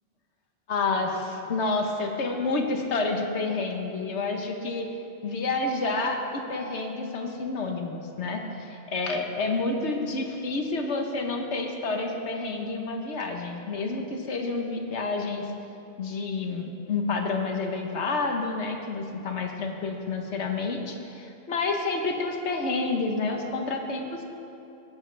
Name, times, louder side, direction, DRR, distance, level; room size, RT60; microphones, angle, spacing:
voice 1, 0.7-4.9 5.2-15.5 16.0-24.2, left 3 dB, 90° left, 3 dB, 1.4 m, -29 dB
18.5 x 11.0 x 3.3 m, 2.7 s
omnidirectional pair, 1.1 m